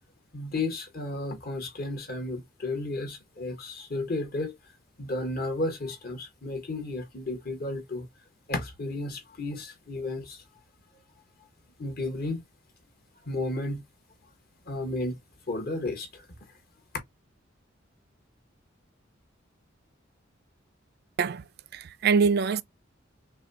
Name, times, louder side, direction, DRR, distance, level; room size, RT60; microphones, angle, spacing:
voice 1, 0.3-4.5 5.0-8.1 8.5-10.4 11.8-12.4 13.2-13.8 14.7-15.2 15.5-16.2, left 2 dB, 50° left, 1.4 m, -33 dB
voice 2, 21.7-22.6, right 5 dB, 55° right, 0.4 m, -24 dB
6.0 x 2.3 x 2.9 m
head